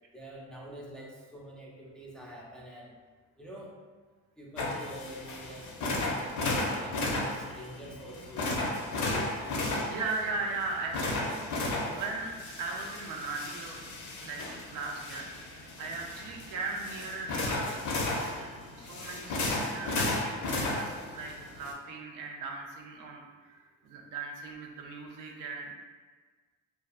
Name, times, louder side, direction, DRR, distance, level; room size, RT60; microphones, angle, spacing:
voice 1, 0.1-3.0 3.4-3.8 4.4-6.3 6.7-8.7 9.0-9.8 15.9-16.4, equal, 5° left, -4 dB, 0.4 m, -46 dB
sound 1, 4.6-21.7, left 2 dB, 70° left, 0.6 m, -34 dB
voice 2, 9.9-11.5 11.8-13.8 14.2-17.8 18.1-25.7, right 3 dB, 85° right, 0 dB, 0.5 m, -38 dB
2.5 x 2.3 x 2.3 m, 1.4 s
cardioid pair, 90°, 30 cm